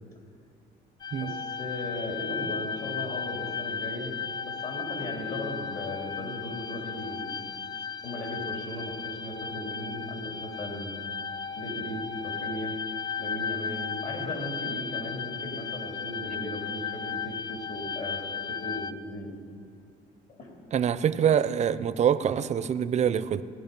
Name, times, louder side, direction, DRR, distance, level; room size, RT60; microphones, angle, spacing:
sound 1, 1.0-18.9, left 6 dB, 25° left, 0.5 m, -35 dB
voice 1, 1.2-7.4 8.0-11.0 11.5-12.8 13.2-19.3 20.3-20.5, left 1 dB, 55° left, 3.0 m, -37 dB
voice 2, 20.7-23.4, right 8 dB, 45° right, 0.6 m, -25 dB
18.5 x 11.5 x 5.3 m
cardioid pair, 110°, 17 cm